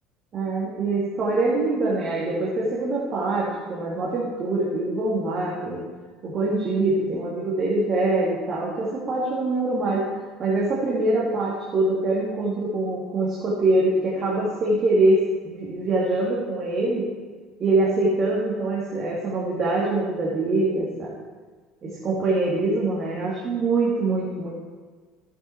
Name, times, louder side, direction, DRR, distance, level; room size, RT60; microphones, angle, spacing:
voice 1, 0.3-5.9 6.2-10.0 10.4-17.1 17.6-21.1 21.8-24.5, right 2 dB, 45° right, -4 dB, 2.2 m, -24 dB
12.0 x 7.7 x 4.6 m, 1.4 s
figure-of-eight pair, 65°, 0 cm